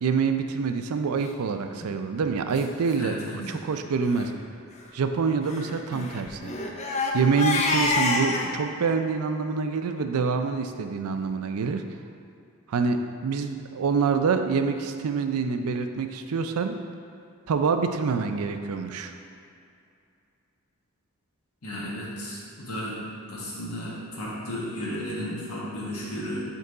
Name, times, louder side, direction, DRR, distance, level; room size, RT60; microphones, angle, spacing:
voice 1, 0.0-3.2 3.5-4.3 4.9-6.5 6.9-11.8 12.7-16.8 17.5-19.1, right 5 dB, 90° right, 7 dB, 0.4 m, -26 dB
Crying sobbing, 1.6-1.9 2.5-2.6 2.9-3.0 3.4-3.6 4.0-4.3 5.4-8.5, left 2 dB, 30° left, 0.5 m, -28 dB
voice 2, 2.9-3.3 21.6-23.0 23.3-26.4, equal, 90° left, -6 dB, 1.5 m, -34 dB
5.4 x 4.5 x 3.9 m, 2.5 s
head